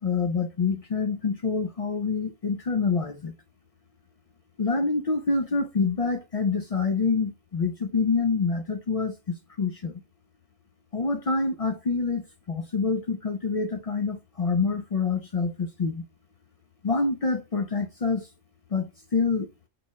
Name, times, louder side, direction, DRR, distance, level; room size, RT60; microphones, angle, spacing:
voice 1, 0.0-3.3 4.6-10.0 10.9-16.0 16.8-18.3 18.7-19.5, left 4 dB, 70° left, 0.3 m, -26 dB
4.2 x 2.2 x 2.9 m
omnidirectional pair, 1.2 m